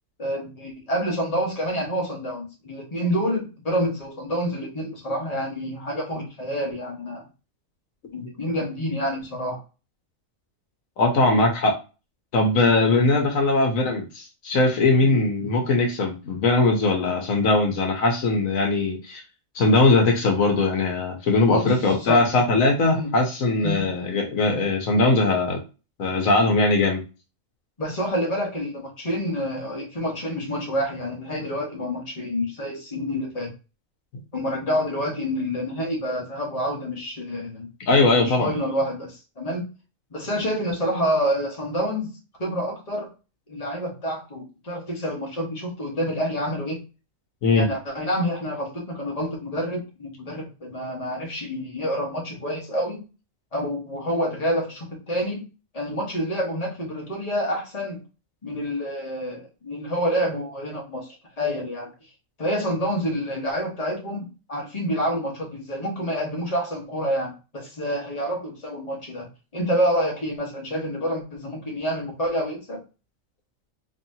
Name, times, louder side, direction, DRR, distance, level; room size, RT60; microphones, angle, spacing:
voice 1, 0.2-7.2 8.1-9.6 15.0-15.2 21.5-22.2 22.8-23.1 23.6-23.9 27.8-33.5 34.3-37.7 38.2-39.6 40.1-42.1 42.4-43.1 43.5-46.8 47.5-53.0 53.5-55.4 55.7-58.0 58.4-61.9 62.4-69.3 69.5-72.8, equal, 30° left, -1 dB, 1.4 m, -28 dB
voice 2, 11.0-11.7 12.3-19.2 19.5-25.6 26.0-27.0 37.9-38.5 47.4-47.7, left 3 dB, 80° left, 3 dB, 1.3 m, -20 dB
4.2 x 3.1 x 2.7 m, 0.31 s
omnidirectional pair, 1.4 m